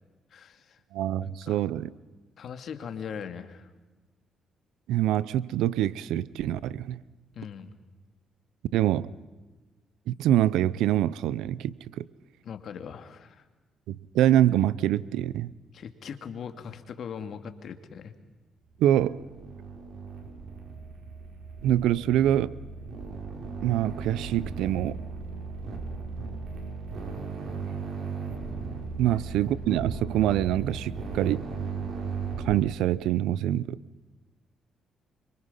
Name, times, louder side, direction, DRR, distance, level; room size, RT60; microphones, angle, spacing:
voice 1, 0.3-0.8 1.2-1.6 2.4-3.7 7.3-7.7 12.4-13.4 15.7-18.1 29.0-29.2, left 7 dB, 60° left, 2.4 m, -40 dB
voice 2, 0.9-1.9 4.9-7.0 8.7-9.1 10.1-12.0 13.9-15.5 18.8-19.2 21.6-22.5 23.6-25.0 29.0-31.5 32.4-33.8, right 12 dB, 90° right, 0.7 m, -25 dB
sound 1, 18.7-32.6, right 4 dB, 65° right, 6.0 m, -37 dB
27.0 x 25.0 x 5.7 m
cardioid pair, 90°, 0 cm